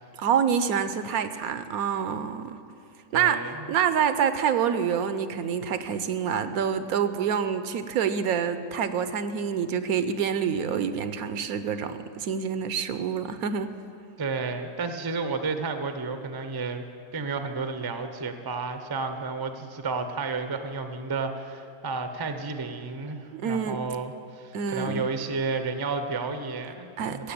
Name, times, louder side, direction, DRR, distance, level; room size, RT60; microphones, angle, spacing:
voice 1, 0.2-2.6 3.1-3.4 3.7-13.7 23.3-23.8 24.5-25.1 27.0-27.3, right 7 dB, 75° right, 11 dB, 1.1 m, -27 dB
voice 2, 3.1-3.6 14.2-16.8 17.1-27.3, right 4 dB, 25° right, 8 dB, 0.5 m, -32 dB
15.5 x 7.6 x 8.6 m, 2.5 s
omnidirectional pair, 1.6 m